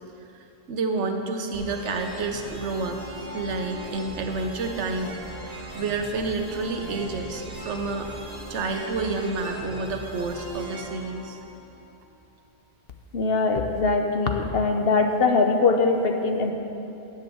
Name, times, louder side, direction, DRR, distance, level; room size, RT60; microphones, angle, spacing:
voice 1, 0.7-3.0 3.3-5.1 5.5-8.1 8.5-11.4, right 3 dB, 65° right, 4 dB, 1.2 m, -29 dB
sound 1, 1.5-12.1, right 1 dB, 30° right, 2.0 m, -39 dB
voice 2, 13.1-16.5, left 4 dB, 50° left, 5 dB, 1.0 m, -22 dB
11.0 x 7.2 x 7.7 m, 2.8 s
omnidirectional pair, 1.3 m